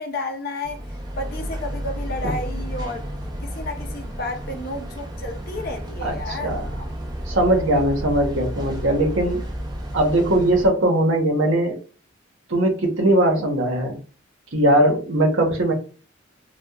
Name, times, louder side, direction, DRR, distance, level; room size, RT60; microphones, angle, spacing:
voice 1, 0.0-6.6, left 2 dB, 45° left, 0.5 m, -32 dB
sound 1, 0.6-10.7, equal, 20° right, 0.4 m, -32 dB
voice 2, 6.0-6.7 7.3-9.4 9.9-11.8 12.5-14.0 14.5-15.7, right 1 dB, 75° right, 0.8 m, -20 dB
2.7 x 2.2 x 2.2 m
head